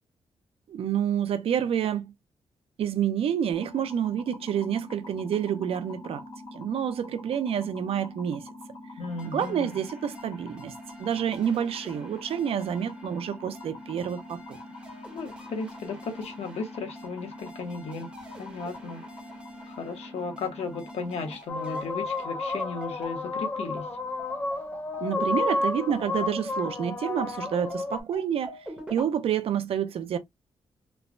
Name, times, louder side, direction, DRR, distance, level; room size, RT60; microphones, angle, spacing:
voice 1, 0.7-2.1 2.8-6.2 6.5-8.5 9.2-10.7 11.0-14.6 25.0-28.6 28.9-30.2, right 9 dB, 65° right, 0.4 m, -28 dB
sound 1, 3.5-21.4, left 2 dB, 40° left, 1.2 m, -44 dB
voice 2, 9.0-9.7 15.1-18.1 18.4-19.0 19.7-23.9, left 4 dB, 80° left, 0.9 m, -35 dB
sound 2, 9.1-26.7 27.2-29.0, right 2 dB, 10° right, 0.9 m, -48 dB
sound 3, 21.5-28.0, left 3 dB, 20° left, 0.3 m, -31 dB
3.2 x 2.0 x 2.4 m
wide cardioid pair, 165°, 10 cm